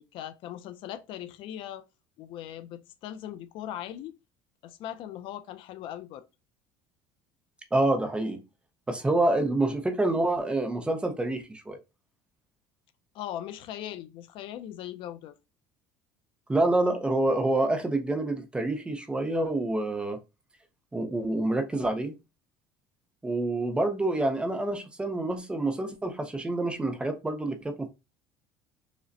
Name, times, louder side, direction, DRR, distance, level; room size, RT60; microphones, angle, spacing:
voice 1, 0.0-1.8 2.2-4.1 4.6-6.2 13.1-15.4, left 11 dB, 55° left, 0.4 m, -39 dB
voice 2, 7.7-8.4 8.9-11.8 16.5-20.2 20.9-22.2 23.2-27.9, right 2 dB, 10° right, 0.6 m, -27 dB
4.9 x 2.1 x 2.6 m
cardioid pair, 145°, 10 cm